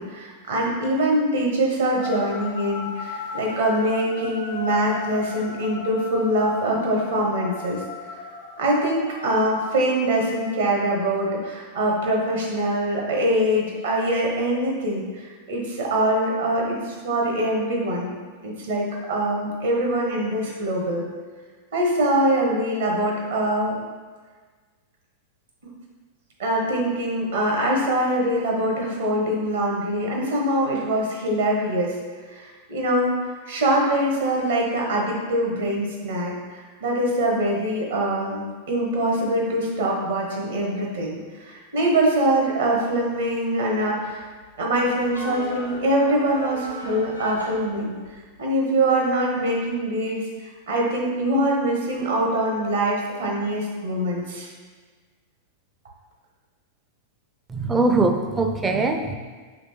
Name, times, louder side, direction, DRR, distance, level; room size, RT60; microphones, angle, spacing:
voice 1, 0.0-7.8 8.6-18.2 18.4-21.1 21.7-23.8 26.4-32.0 32.3-33.1 33.4-44.2 44.6-47.9 48.4-50.2 50.7-54.5, right 1 dB, 65° right, -2 dB, 1.0 m, -23 dB
sound 1, 2.0-11.4, left 3 dB, 60° left, 0.6 m, -37 dB
sound 2, 44.0-48.4, equal, 90° right, 0.6 m, -37 dB
voice 2, 57.5-59.1, right 3 dB, 15° right, 5 dB, 0.4 m, -21 dB
5.0 x 3.1 x 3.0 m, 1.4 s
figure-of-eight pair, 90°, 0 cm